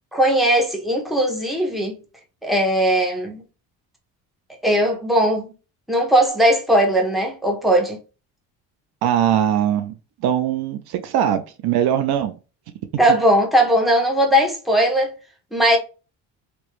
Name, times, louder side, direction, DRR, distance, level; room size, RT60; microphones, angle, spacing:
voice 1, 0.1-2.0 2.4-3.4 4.6-5.5 5.9-8.0 13.0-15.1 15.5-15.8, equal, ahead, 1.2 m, -18 dB
voice 2, 9.0-10.0 10.2-12.4, right 10 dB, 65° right, 0.6 m, -21 dB
3.1 x 2.9 x 3.1 m
supercardioid pair, 85°, 41 cm